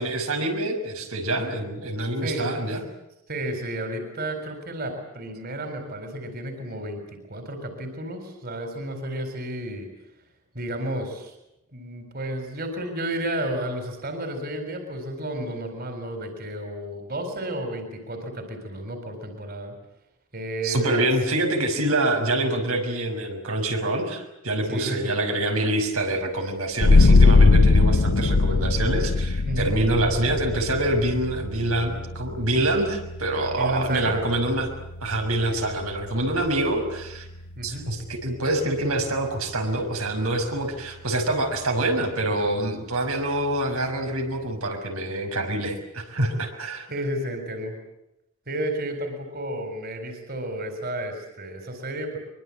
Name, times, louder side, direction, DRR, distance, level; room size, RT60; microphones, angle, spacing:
voice 1, 0.0-2.8 20.6-34.7 35.0-37.3 37.6-46.9, right 1 dB, 85° right, 3 dB, 5.8 m, -26 dB
voice 2, 2.2-2.5 3.3-9.9 10.5-11.3 11.7-19.7 20.3-21.1 24.6-25.1 29.5-29.7 33.5-34.2 37.6-37.9 46.9-47.8 48.5-52.2, right 1 dB, 45° right, 6 dB, 4.3 m, -32 dB
sound 1, 26.8-38.1, left 3 dB, 85° left, 0.8 m, -22 dB
24.0 x 23.5 x 8.7 m, 0.88 s
head